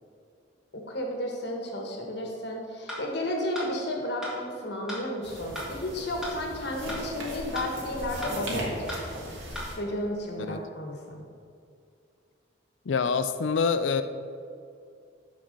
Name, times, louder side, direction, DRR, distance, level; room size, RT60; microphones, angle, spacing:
voice 1, 0.7-9.3 9.7-11.2, left 1 dB, 55° left, 1 dB, 1.3 m, -33 dB
sound 1, 2.9-3.0 3.5-3.7 4.2-4.3 4.9-5.0 5.5-5.7 6.2-6.3 6.9-7.0 7.5-7.7 8.2-8.3 8.9-9.0 9.5-9.7, equal, 5° right, 1.8 m, -35 dB
sound 2, 5.2-9.8, right 1 dB, 75° right, 1.9 m, -38 dB
voice 2, 12.9-14.0, left 5 dB, 75° left, 11 dB, 0.4 m, -25 dB
9.5 x 4.2 x 6.5 m, 2.4 s
head